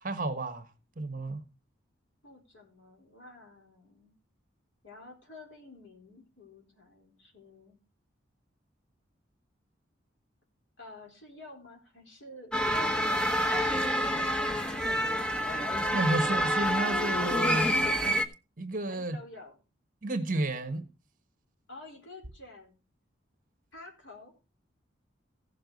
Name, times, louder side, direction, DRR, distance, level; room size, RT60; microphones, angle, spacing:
voice 1, 0.0-0.7 1.0-1.4 15.9-17.8 18.6-19.2 20.0-20.9, right 2 dB, 45° right, 1.3 m, -31 dB
voice 2, 2.2-4.1 4.8-7.8 10.8-13.5 18.9-19.6 21.7-22.8 23.7-24.3, left 2 dB, 80° left, 4.2 m, -50 dB
sound 1, 12.5-18.2, equal, 5° left, 0.9 m, -27 dB
16.0 x 6.8 x 4.0 m
head